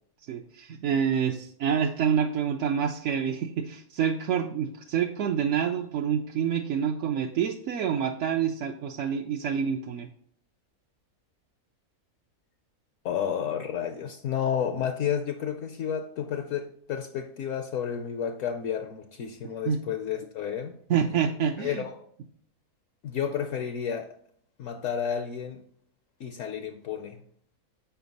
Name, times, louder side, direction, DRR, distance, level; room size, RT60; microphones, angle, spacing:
voice 1, 0.3-10.1 19.7-19.8 20.9-21.8, right 8 dB, 65° right, 0.7 m, -27 dB
voice 2, 13.0-20.8 21.6-21.9 23.0-24.2 24.6-25.6 26.2-27.2, left 8 dB, 70° left, 0.9 m, -31 dB
7.0 x 5.0 x 4.0 m
omnidirectional pair, 1.5 m